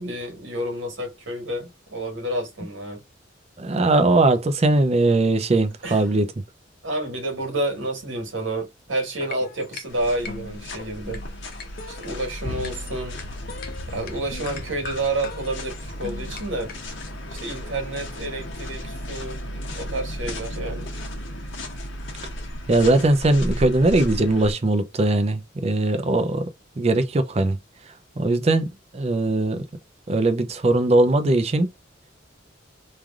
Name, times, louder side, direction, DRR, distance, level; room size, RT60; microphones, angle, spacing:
voice 1, 0.0-3.0 5.8-6.1 6.8-11.2 11.9-13.2 13.9-16.7 17.3-19.4 19.8-20.9, right 1 dB, 85° right, 1.6 m, -29 dB
voice 2, 3.6-6.3 22.7-26.5 26.8-27.6 28.2-29.6 30.1-31.7, right 2 dB, 35° right, 0.5 m, -20 dB
sound 1, 9.0-17.1, left 4 dB, 50° left, 0.6 m, -40 dB
sound 2, 9.9-24.5, equal, 80° left, 1.0 m, -34 dB
3.2 x 2.4 x 2.3 m
head